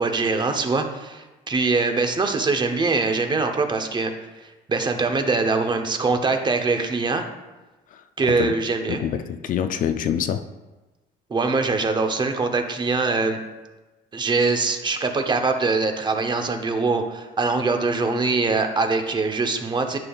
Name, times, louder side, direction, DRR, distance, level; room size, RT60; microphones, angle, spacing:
voice 1, 0.0-4.1 4.7-7.2 8.2-9.0 11.3-13.4 14.1-20.0, right 3 dB, 25° right, 0.8 m, -23 dB
voice 2, 7.9-8.5 8.9-10.5, left 9 dB, 55° left, 0.4 m, -26 dB
10.5 x 5.4 x 2.3 m
cardioid pair, 110°, 17 cm